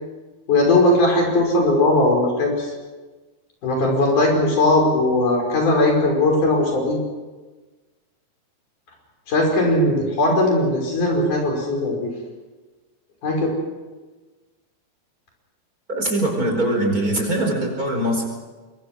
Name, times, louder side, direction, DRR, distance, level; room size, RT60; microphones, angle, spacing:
voice 1, 0.5-2.7 3.6-7.0 9.3-12.0 13.2-13.5, left 2 dB, 85° left, 0 dB, 7.1 m, -18 dB
voice 2, 15.9-18.2, right 1 dB, 25° right, 2 dB, 5.0 m, -22 dB
25.5 x 22.5 x 6.3 m, 1.3 s
omnidirectional pair, 3.5 m